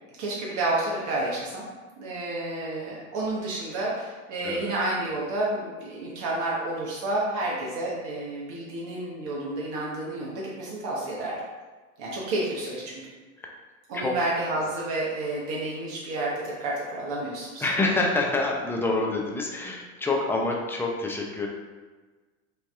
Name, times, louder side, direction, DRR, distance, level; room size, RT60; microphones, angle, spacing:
voice 1, 0.2-1.7 2.0-11.4 12.0-13.1 13.9-17.7, right 2 dB, 45° right, -4 dB, 1.1 m, -30 dB
voice 2, 17.6-21.5, left 2 dB, 5° left, -1 dB, 0.4 m, -27 dB
5.5 x 2.7 x 2.3 m, 1.3 s
hypercardioid pair, 95°, 41 cm